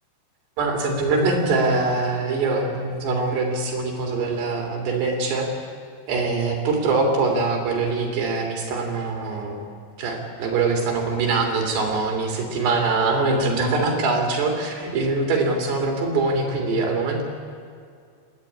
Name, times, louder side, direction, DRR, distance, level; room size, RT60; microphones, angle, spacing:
voice 1, 0.6-5.5 6.1-9.6 10.0-17.2, right 3 dB, 65° right, 2 dB, 5.1 m, -23 dB
29.0 x 12.5 x 9.7 m, 2.2 s
omnidirectional pair, 5.3 m